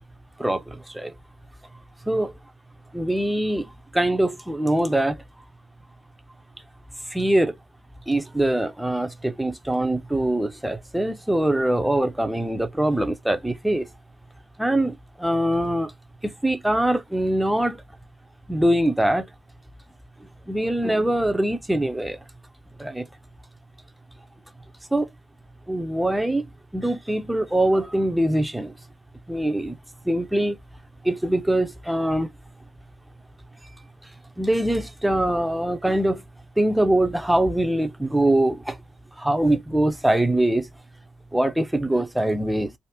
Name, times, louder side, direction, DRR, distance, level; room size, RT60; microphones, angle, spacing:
voice 1, 0.4-1.1 2.1-2.3 2.9-5.2 7.1-7.5 8.1-13.9 14.6-14.9 15.2-15.9 16.2-17.8 18.5-19.2 20.5-22.2 22.8-23.1 24.9-25.1 25.7-26.4 26.7-28.7 29.3-29.7 30.1-30.6 31.0-32.3 34.4-36.2 36.6-38.8 39.2-40.7 41.3-42.7, right 1 dB, 5° right, 0.6 m, -23 dB
3.4 x 2.0 x 2.8 m
cardioid pair, 90°, 0 cm